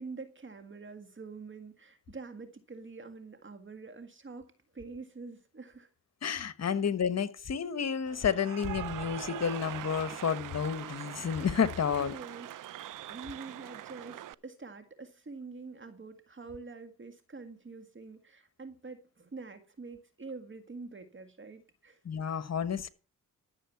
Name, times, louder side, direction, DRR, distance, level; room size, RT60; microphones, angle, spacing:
voice 1, 0.0-4.5 4.7-5.9 12.0-22.0, right 4 dB, 35° right, 1.8 m, -46 dB
voice 2, 6.2-12.1 22.0-22.9, left 7 dB, 50° left, 1.3 m, -30 dB
Cheering / Applause, 8.1-14.3, right 13 dB, 70° right, 0.6 m, -42 dB
13.5 x 7.3 x 5.8 m
cardioid pair, 70°, 33 cm